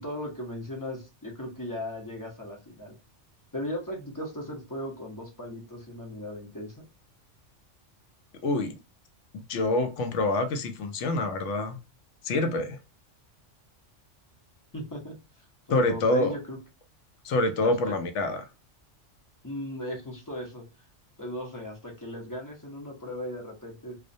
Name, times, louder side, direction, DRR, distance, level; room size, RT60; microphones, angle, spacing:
voice 1, 0.0-2.9 3.5-6.8 14.7-16.6 17.6-17.9 19.4-20.7 21.2-24.0, left 1 dB, 20° left, 0.6 m, -37 dB
voice 2, 8.4-8.8 9.3-11.8 12.2-12.8 15.7-16.3 17.2-18.4, left 2 dB, 80° left, 0.9 m, -26 dB
2.3 x 2.1 x 2.5 m
omnidirectional pair, 1.3 m